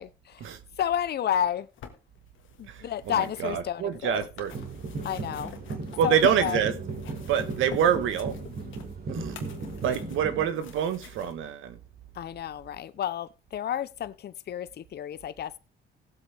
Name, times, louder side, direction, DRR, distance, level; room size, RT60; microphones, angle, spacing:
voice 1, 0.0-0.5 0.8-1.7 2.6-4.2 5.0-5.5 6.0-6.6 12.2-15.6, left 10 dB, 55° left, 0.7 m, -31 dB
sound 1, 1.4-6.5 6.8-11.3 12.1-12.2, left 9 dB, 80° left, 1.7 m, -45 dB
voice 2, 2.7-4.5 6.0-6.7 7.3-8.4 9.1-9.5 9.8-11.8, right 8 dB, 85° right, 1.3 m, -26 dB
sound 2, 4.5-10.5, right 3 dB, 50° right, 3.6 m, -36 dB
17.0 x 8.0 x 3.4 m
cardioid pair, 90°, 20 cm